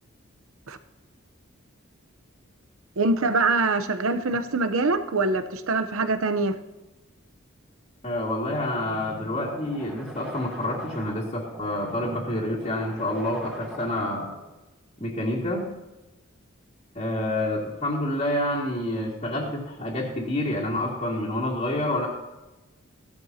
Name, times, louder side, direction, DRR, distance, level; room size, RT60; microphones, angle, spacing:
voice 1, 3.0-6.5, right 3 dB, 80° right, 11 dB, 0.9 m, -24 dB
voice 2, 8.0-14.3 15.0-15.7 16.9-22.1, left 1 dB, 35° left, -6 dB, 2.3 m, -28 dB
sound 1, 8.5-14.5, equal, 5° right, 2.1 m, -42 dB
16.0 x 12.0 x 2.9 m, 1.0 s
head